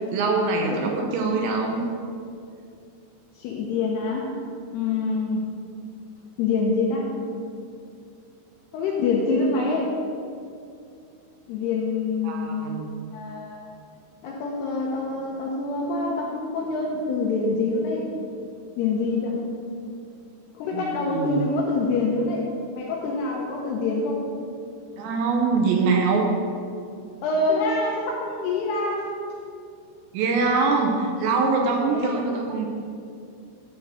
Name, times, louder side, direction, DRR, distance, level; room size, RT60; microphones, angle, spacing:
voice 1, 0.1-1.8 12.2-12.9 20.7-20.8 21.1-21.4 25.0-26.3 30.1-32.7, right 4 dB, 80° right, 1 dB, 2.9 m, -23 dB
voice 2, 3.3-4.3 4.7-5.5 6.4-7.1 8.7-9.9 11.5-12.9 13.1-13.7 14.2-18.0 18.8-19.4 20.5-22.5 22.7-24.3 27.2-29.1 31.9-32.2, left 3 dB, 80° left, -2 dB, 2.5 m, -26 dB
11.0 x 3.8 x 7.5 m, 2.4 s
omnidirectional pair, 5.6 m